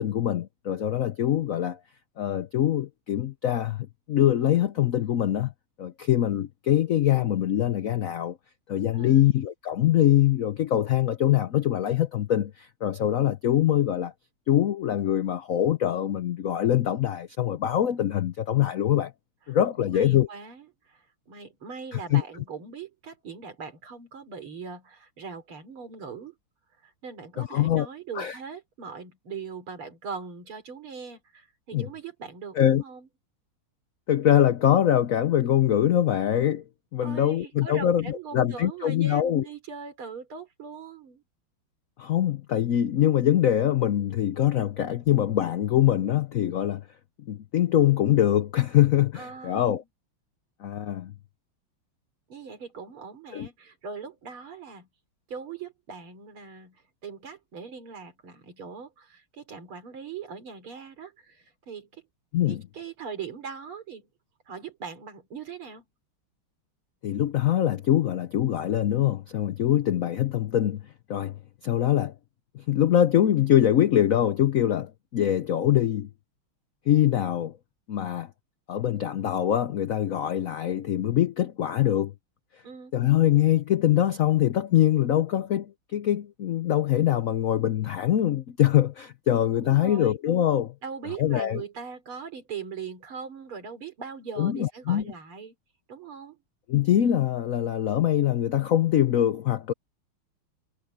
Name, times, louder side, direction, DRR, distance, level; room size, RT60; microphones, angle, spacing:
voice 1, 0.0-1.8 2.2-5.5 5.8-8.4 8.7-14.1 14.5-19.1 19.5-20.3 21.9-22.2 27.4-27.9 28.1-28.4 31.7-31.9 32.6-32.8 34.1-36.6 36.9-39.5 42.0-46.8 47.3-49.8 50.6-51.1 53.3-53.5 62.3-62.6 67.0-70.8 71.1-72.1 72.5-76.1 76.9-77.5 77.9-78.3 78.7-82.1 82.9-90.7 91.2-91.6 94.4-95.1 96.7-99.7, left 11 dB, 80° left, 0.7 m, -23 dB
voice 2, 8.9-9.3 19.8-26.3 26.8-33.1 37.0-41.2 49.2-49.7 52.3-54.9 55.3-62.0 62.5-64.1 64.5-65.8 69.8-69.9 82.6-82.9 89.6-90.2 90.8-95.5 95.9-96.4, right 6 dB, 80° right, 4.5 m, -40 dB
omnidirectional pair, 2.3 m